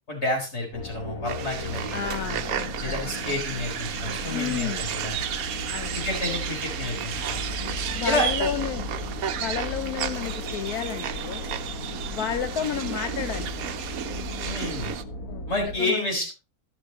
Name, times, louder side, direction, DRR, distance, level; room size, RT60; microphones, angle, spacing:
voice 1, 0.1-2.4 2.8-5.2 5.9-7.4 8.0-8.3 14.4-14.9 15.5-16.3, left 2 dB, 45° left, 1 dB, 4.3 m, -30 dB
sound 1, 0.7-15.8, left 2 dB, 70° left, 2.3 m, -36 dB
sound 2, 1.3-15.0, right 10 dB, 75° right, 1.2 m, -33 dB
voice 2, 1.9-2.7 4.3-4.8 5.7-6.0 7.9-8.8 9.3-11.5 12.0-13.5 15.3-16.1, left 9 dB, 85° left, 9 dB, 1.3 m, -31 dB
sound 3, 3.1-8.4, right 8 dB, 55° right, 0.9 m, -37 dB
12.0 x 11.5 x 3.0 m, 0.28 s
omnidirectional pair, 1.6 m